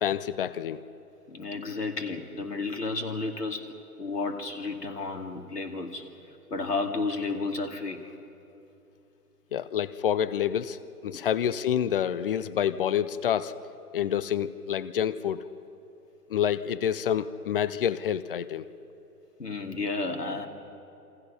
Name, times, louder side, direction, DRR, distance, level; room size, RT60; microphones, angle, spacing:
voice 1, 0.0-0.8 9.5-10.8 11.0-13.5 13.9-15.4 16.3-18.7, left 9 dB, 35° left, 16 dB, 0.6 m, -28 dB
voice 2, 1.3-3.7 4.0-6.1 6.5-8.0 11.1-11.2 19.4-20.5, left 3 dB, 80° left, 5 dB, 2.4 m, -32 dB
27.5 x 25.5 x 5.6 m, 2.8 s
figure-of-eight pair, 125°, 47 cm